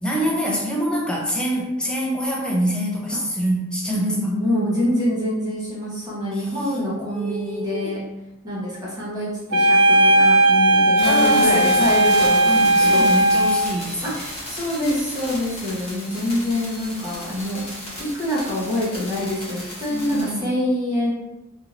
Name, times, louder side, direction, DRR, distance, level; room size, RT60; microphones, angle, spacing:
voice 1, 0.0-4.2 6.3-7.9 11.0-11.9 12.4-14.3 17.2-17.6 19.9-20.5, equal, 5° left, -3 dB, 0.5 m, -26 dB
voice 2, 3.9-8.0 8.4-13.1 14.0-14.1 14.5-17.6 18.0-21.1, left 1 dB, 20° right, -8 dB, 0.9 m, -25 dB
sound 1, 9.5-13.7, right 1 dB, 80° right, 0.4 m, -16 dB
sound 2, 11.0-20.3, left 1 dB, 30° left, 0.9 m, -35 dB
3.0 x 2.7 x 2.4 m, 0.97 s
head